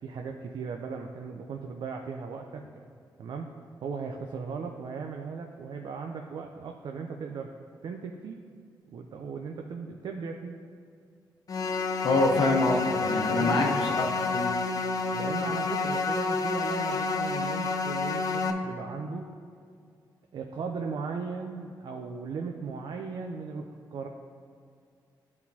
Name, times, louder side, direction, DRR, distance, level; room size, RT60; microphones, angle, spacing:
voice 1, 0.0-2.6 3.2-3.5 3.8-7.5 7.8-8.4 8.9-10.6 13.2-13.7 15.1-19.3 20.3-24.1, right 5 dB, 70° right, 3 dB, 0.5 m, -37 dB
sound 1, 11.5-18.5, left 3 dB, 45° left, 0.6 m, -29 dB
voice 2, 12.0-14.0 14.3-14.5, left 2 dB, 70° left, 0 dB, 1.0 m, -25 dB
12.0 x 4.3 x 2.8 m, 2.3 s
cardioid pair, 70°, 8 cm